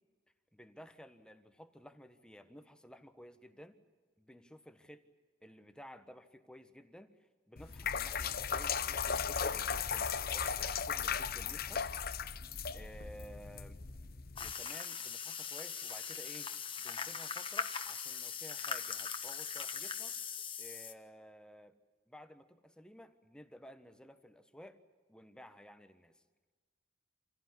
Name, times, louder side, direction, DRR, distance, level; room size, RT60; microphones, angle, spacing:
voice 1, 0.5-3.8 4.2-5.0 5.4-11.9 12.7-13.8 14.4-16.5 16.8-20.2 20.6-21.8 22.1-24.8 25.1-26.2, equal, 5° left, 9 dB, 1.3 m, -54 dB
sound 1, 7.6-14.5, left 6 dB, 50° left, 0.9 m, -36 dB
sound 2, 14.4-20.9, left 6 dB, 25° left, 1.3 m, -40 dB
27.0 x 16.5 x 9.9 m, 1.4 s
head